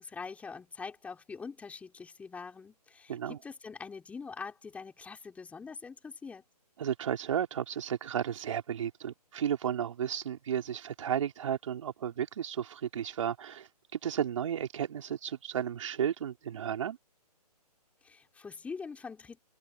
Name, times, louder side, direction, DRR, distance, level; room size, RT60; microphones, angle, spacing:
voice 1, 0.0-6.4 18.0-19.4, left 5 dB, 5° left, 4.2 m, -44 dB
voice 2, 6.8-17.0, right 9 dB, 50° right, 4.8 m, -33 dB
hypercardioid pair, 150°, 21 cm